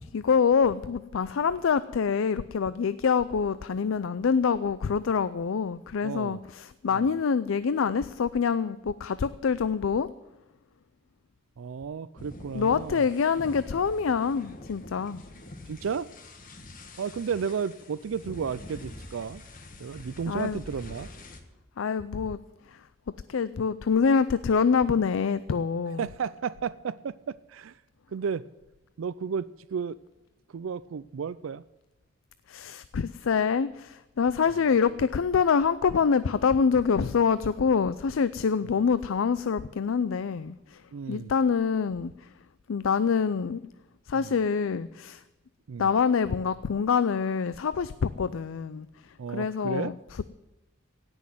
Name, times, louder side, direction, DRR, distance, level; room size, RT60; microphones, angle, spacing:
voice 1, 0.0-10.1 12.5-15.2 20.3-20.6 21.8-22.4 22.6-22.9 23.3-26.1 32.5-42.3 42.7-43.6 44.1-45.2 45.8-50.2, left 6 dB, 75° left, 15 dB, 0.4 m, -26 dB
voice 2, 6.0-6.4 6.9-7.2 11.6-13.0 15.7-16.1 17.0-19.4 19.8-21.1 26.0-27.8 28.1-28.5 29.0-30.0 30.5-31.6 40.9-41.3 44.2-44.3 45.7-45.9 49.2-49.9, right 6 dB, 75° right, 17 dB, 0.4 m, -33 dB
sound 1, 12.2-21.4, left 2 dB, 45° left, 1.5 m, -45 dB
17.0 x 6.3 x 9.3 m, 1.0 s
head